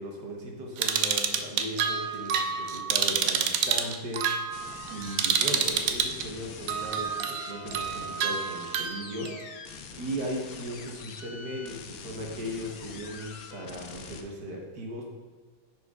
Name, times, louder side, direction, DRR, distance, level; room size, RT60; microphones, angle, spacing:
voice 1, 0.0-4.4 4.9-9.3 9.9-15.0, equal, 60° right, 0 dB, 1.7 m, -37 dB
sound 1, 0.8-6.2 6.7-9.3, right 7 dB, 85° right, 0.7 m, -28 dB
sound 2, 4.5-14.2, left 5 dB, 85° left, 1.5 m, -44 dB
10.5 x 6.4 x 2.4 m, 1.4 s
omnidirectional pair, 2.1 m